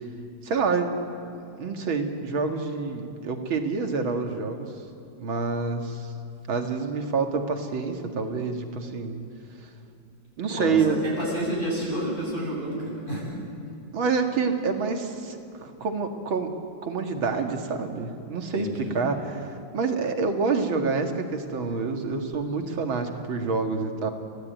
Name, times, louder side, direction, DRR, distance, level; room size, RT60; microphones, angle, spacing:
voice 1, 0.4-1.2 1.6-4.7 5.2-6.1 6.5-9.2 10.4-11.0 13.9-24.1, right 4 dB, 90° right, 4 dB, 2.8 m, -27 dB
voice 2, 10.5-13.3 18.5-18.9, right 1 dB, 25° left, -5 dB, 8.4 m, -30 dB
29.5 x 17.0 x 9.2 m, 2.6 s
omnidirectional pair, 2.1 m